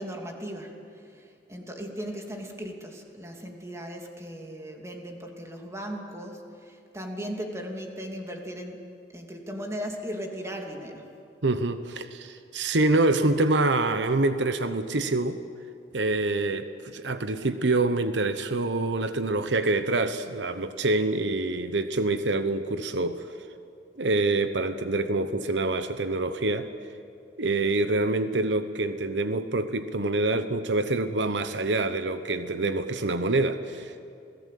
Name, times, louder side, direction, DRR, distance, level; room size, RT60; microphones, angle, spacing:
voice 1, 0.0-8.8 9.1-11.1, equal, 15° right, 2 dB, 2.7 m, -37 dB
voice 2, 11.4-15.4 15.9-23.3 24.0-26.7 27.4-34.0, right 2 dB, 85° right, 10 dB, 1.1 m, -26 dB
29.0 x 18.0 x 8.5 m, 2.4 s
head